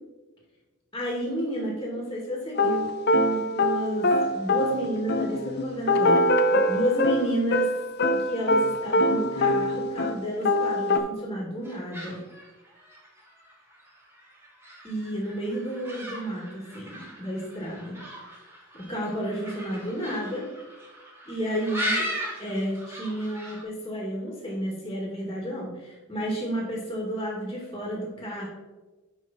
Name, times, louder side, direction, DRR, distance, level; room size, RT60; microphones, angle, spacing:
voice 1, 0.9-7.7 8.2-12.2 14.8-18.0 18.7-20.5 21.3-22.1 22.4-28.5, equal, 20° left, -2 dB, 2.0 m, -31 dB
sound 1, 2.6-10.2 10.5-11.0, left 1 dB, 50° left, 0.6 m, -23 dB
sound 2, 11.6-23.6, equal, 10° right, 2.1 m, -38 dB
9.5 x 5.3 x 4.1 m, 1.2 s
head